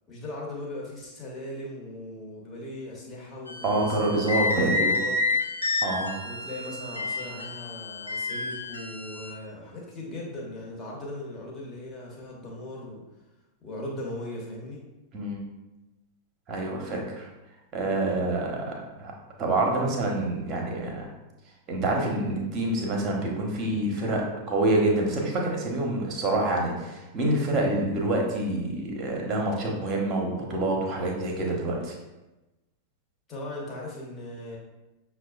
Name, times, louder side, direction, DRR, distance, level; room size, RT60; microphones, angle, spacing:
voice 1, 0.1-5.2 6.2-13.0 13.6-14.9 33.3-34.6, left 1 dB, 20° left, -4 dB, 1.2 m, -38 dB
sound 1, 3.5-9.3, left 3 dB, 85° left, 0.7 m, -30 dB
voice 2, 3.6-4.9 5.8-6.1 15.1-15.4 16.5-17.3 17.7-19.1 19.4-21.1 21.7-31.9, right 2 dB, 30° right, 0 dB, 0.9 m, -27 dB
6.3 x 2.3 x 2.4 m, 1.0 s
figure-of-eight pair, 90°, 0 cm